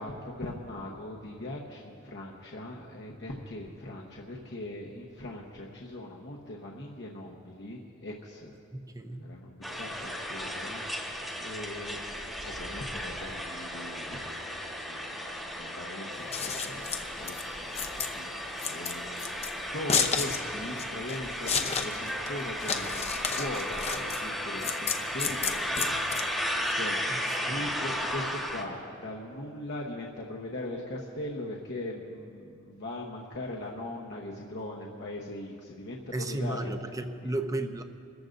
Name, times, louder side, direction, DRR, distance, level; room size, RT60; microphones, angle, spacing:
voice 1, 0.0-8.5 9.2-19.5 19.7-27.1 27.4-36.7 37.2-37.3, left 1 dB, 60° left, -2 dB, 1.1 m, -40 dB
voice 2, 8.7-9.3 27.1-27.6 36.1-37.8, right 2 dB, 15° right, 7 dB, 0.7 m, -34 dB
sound 1, 9.6-28.6, equal, ahead, 1.3 m, -35 dB
Scissors, 16.1-26.7, left 6 dB, 30° left, 0.7 m, -32 dB
29.0 x 14.0 x 2.6 m, 2.4 s
head